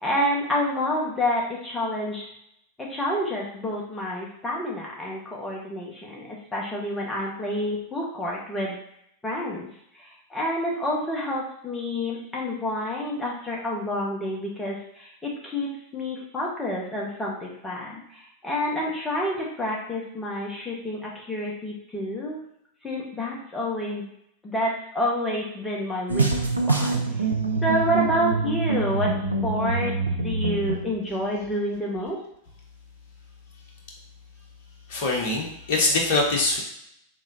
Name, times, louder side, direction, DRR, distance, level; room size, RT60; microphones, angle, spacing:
voice 1, 0.0-2.3 2.8-8.8 9.2-9.7 10.0-22.4 22.8-24.1 24.4-27.2 27.6-29.1 29.4-32.2, left 1 dB, 10° left, -3 dB, 1.3 m, -28 dB
sound 1, 26.1-30.9, right 3 dB, 80° right, 0.5 m, -25 dB
voice 2, 34.9-36.6, left 2 dB, 50° left, 0 dB, 1.2 m, -23 dB
3.6 x 3.1 x 4.0 m, 0.73 s
figure-of-eight pair, 90°, 0 cm